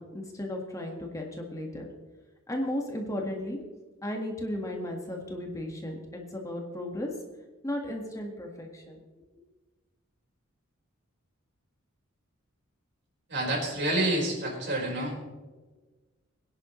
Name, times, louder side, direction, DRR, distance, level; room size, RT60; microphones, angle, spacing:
voice 1, 0.0-1.9 2.5-3.6 4.0-7.1 7.6-9.0, left 1 dB, 15° left, 1 dB, 1.6 m, -35 dB
voice 2, 13.3-15.2, right 1 dB, 55° right, -1 dB, 4.7 m, -28 dB
23.0 x 10.5 x 3.2 m, 1.3 s
head